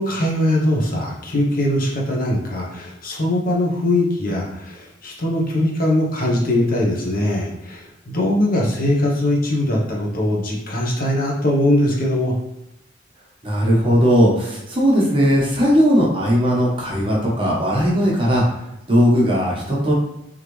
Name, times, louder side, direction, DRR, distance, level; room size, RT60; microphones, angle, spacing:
voice 1, 0.0-12.4, left 1 dB, 50° left, -2 dB, 1.0 m, -21 dB
voice 2, 13.4-18.4 18.9-19.9, equal, 30° right, -4 dB, 1.1 m, -17 dB
3.6 x 3.4 x 3.1 m, 0.86 s
head